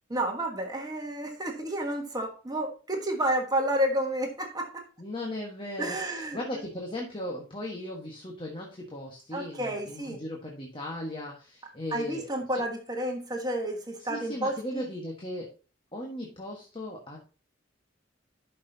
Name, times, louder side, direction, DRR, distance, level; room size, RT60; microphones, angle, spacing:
voice 1, 0.1-4.8 5.8-6.4 9.3-10.2 11.9-14.9, right 1 dB, 20° right, 2 dB, 1.4 m, -30 dB
voice 2, 5.0-12.6 14.0-15.5 15.9-17.2, left 1 dB, 25° left, -1 dB, 1.4 m, -37 dB
12.0 x 5.7 x 2.8 m, 0.35 s
head